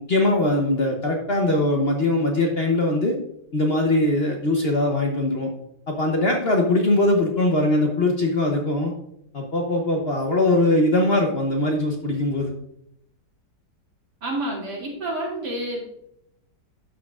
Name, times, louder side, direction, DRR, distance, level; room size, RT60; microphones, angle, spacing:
voice 1, 0.1-3.2 3.5-5.5 5.9-8.9 9.3-12.5, left 2 dB, 45° left, 2 dB, 0.9 m, -21 dB
voice 2, 14.2-15.9, right 1 dB, 75° right, -3 dB, 2.9 m, -29 dB
12.0 x 6.3 x 2.4 m, 0.77 s
omnidirectional pair, 1.8 m